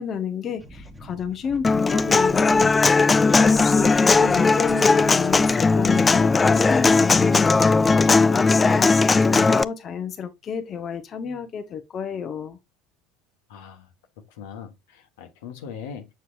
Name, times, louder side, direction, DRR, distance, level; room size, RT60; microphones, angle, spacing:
voice 1, 0.0-12.6, left 7 dB, 40° left, 1.0 m, -30 dB
sound 1, 0.6-8.2, right 1 dB, 5° right, 1.4 m, -43 dB
Human voice / Acoustic guitar, 1.6-9.6, left 4 dB, 20° left, 0.3 m, -18 dB
voice 2, 13.5-13.9 14.4-16.1, left 6 dB, 70° left, 1.3 m, -40 dB
6.9 x 6.7 x 2.5 m
hypercardioid pair, 75°, 0 cm